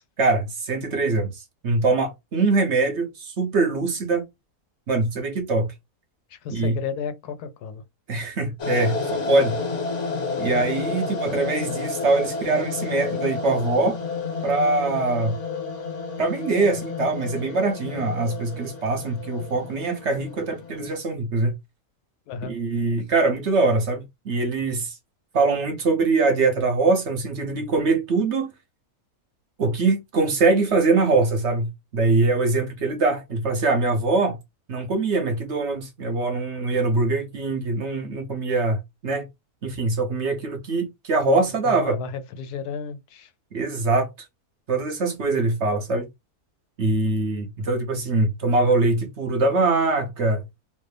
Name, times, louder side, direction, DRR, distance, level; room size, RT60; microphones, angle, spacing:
voice 1, 0.2-4.3 4.9-5.7 6.5-6.8 8.1-9.6 10.4-14.0 14.4-15.4 16.2-21.5 22.4-25.0 25.3-28.5 29.6-34.4 34.7-39.3 39.6-42.0 43.5-44.1 44.7-46.1 46.8-50.4, right 3 dB, 55° right, 0.9 m, -23 dB
voice 2, 6.3-7.8 10.6-10.9 22.3-22.6 41.7-43.3, left 6 dB, 85° left, 1.2 m, -33 dB
sound 1, 8.6-20.9, left 4 dB, 50° left, 1.4 m, -31 dB
3.2 x 2.6 x 3.2 m
omnidirectional pair, 1.6 m